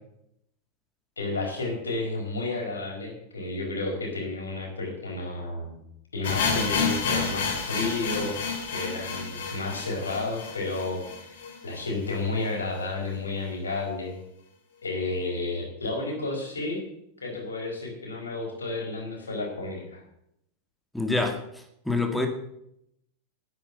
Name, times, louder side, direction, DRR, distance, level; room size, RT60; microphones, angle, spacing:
voice 1, 1.2-5.8 6.1-8.3 8.6-11.4 11.6-14.2 14.8-16.8 17.2-20.0, left 2 dB, 75° left, 0 dB, 4.8 m, -31 dB
sound 1, 6.2-12.2 12.4-12.5 12.8-12.9 13.4-13.5, left 5 dB, 60° left, 3.2 m, -30 dB
voice 2, 20.9-22.3, left 2 dB, 5° left, 4 dB, 1.9 m, -27 dB
11.0 x 8.9 x 8.9 m, 0.77 s
figure-of-eight pair, 90°, 0 cm